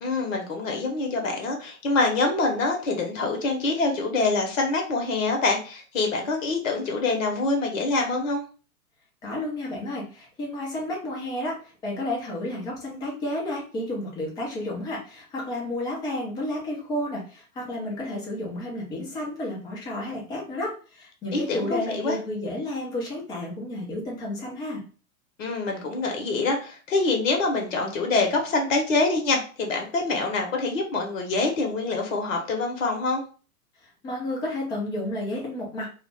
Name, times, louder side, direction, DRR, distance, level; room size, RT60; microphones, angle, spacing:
voice 1, 0.0-8.4 21.3-22.2 25.4-33.2, left 3 dB, 60° left, 2 dB, 0.8 m, -25 dB
voice 2, 9.2-11.6 11.8-24.8 33.8-35.9, left 1 dB, 10° left, -2 dB, 0.4 m, -31 dB
2.4 x 2.0 x 3.2 m, 0.38 s
figure-of-eight pair, 100°, 44 cm